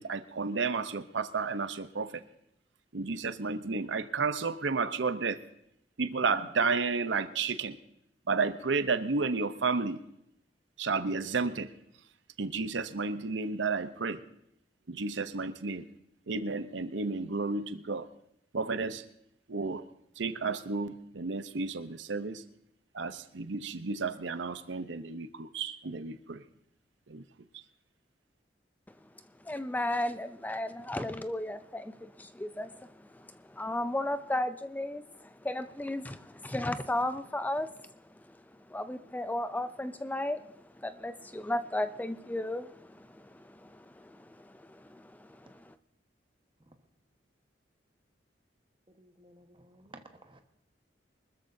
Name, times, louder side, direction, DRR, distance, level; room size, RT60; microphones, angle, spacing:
voice 1, 0.0-2.2 2.9-5.4 6.0-7.8 8.3-10.0 10.8-11.7 12.4-14.2 14.9-15.8 16.3-18.1 18.5-19.0 19.5-19.8 20.2-22.4 22.9-26.4 27.1-27.2, right 4 dB, 85° right, 0.8 m, -32 dB
voice 2, 29.5-32.7 33.6-35.0 35.4-37.7 38.7-40.4 40.8-43.3 44.0-44.2 44.8-45.0, left 1 dB, 10° left, 0.4 m, -34 dB
voice 3, 49.0-50.4, right 2 dB, 30° right, 1.3 m, -54 dB
24.5 x 13.5 x 2.7 m
head